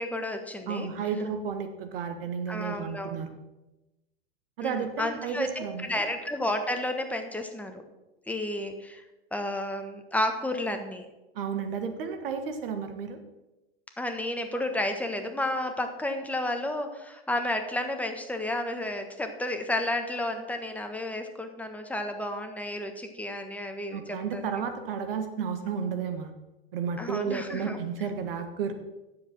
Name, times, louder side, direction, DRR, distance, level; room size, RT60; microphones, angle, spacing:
voice 1, 0.0-0.9 2.5-3.2 4.6-7.8 8.3-9.0 9.3-11.1 14.0-24.5 27.0-27.8, left 1 dB, 5° left, 5 dB, 1.3 m, -32 dB
voice 2, 0.7-3.3 4.6-6.0 11.3-13.2 23.9-26.3 26.7-28.7, right 6 dB, 65° right, 7 dB, 1.6 m, -32 dB
9.6 x 7.6 x 6.0 m, 1.0 s
hypercardioid pair, 90°, 31 cm